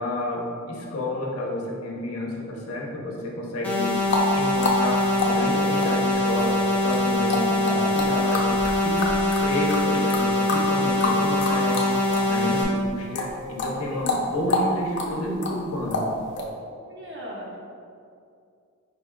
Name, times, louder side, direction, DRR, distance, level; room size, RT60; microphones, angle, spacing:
voice 1, 0.0-4.0 4.3-9.1 9.4-12.0 12.3-16.1, left 1 dB, 90° left, -1 dB, 0.7 m, -30 dB
sound 1, 3.6-12.6, left 1 dB, 5° left, 0.5 m, -23 dB
sound 2, 4.0-12.3 12.6-16.5, left 2 dB, 55° left, 0.5 m, -28 dB
voice 2, 16.6-17.6, equal, 55° right, -4 dB, 0.8 m, -38 dB
5.1 x 3.5 x 2.2 m, 2.4 s
head